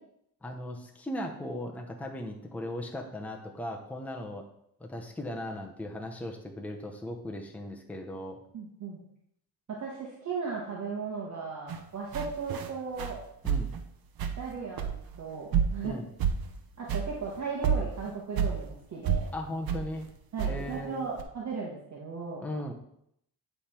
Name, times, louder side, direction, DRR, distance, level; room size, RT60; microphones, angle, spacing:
voice 1, 0.4-4.4 4.8-8.4 13.4-13.7 15.8-16.1 19.3-20.1 20.5-21.1 22.4-22.7, left 1 dB, 5° left, 1 dB, 0.8 m, -37 dB
voice 2, 8.5-9.0 9.7-13.2 14.4-15.9 16.8-19.3 20.3-22.4, right 5 dB, 45° right, -3 dB, 1.4 m, -36 dB
sound 1, 11.7-11.8 12.1-12.7 13.0-13.2 13.4-13.8 14.2-14.5 14.8-15.2 15.5-15.9 16.2-16.6 16.9-17.1 17.4-17.5 17.6-18.6 19.1-19.3 19.7-19.9 20.4-20.8 21.2-21.3, right 7 dB, 65° right, 0.9 m, -29 dB
9.3 x 3.5 x 4.4 m, 0.73 s
cardioid pair, 120°, 39 cm